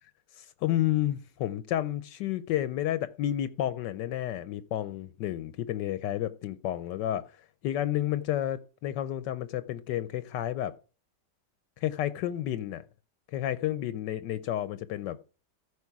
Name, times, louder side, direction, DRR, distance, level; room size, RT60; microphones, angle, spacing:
voice 1, 0.4-7.4 7.6-10.8 11.8-12.8 13.3-15.3, left 12 dB, 80° left, 1.3 m, -31 dB
14.5 x 5.1 x 4.7 m
omnidirectional pair, 1.9 m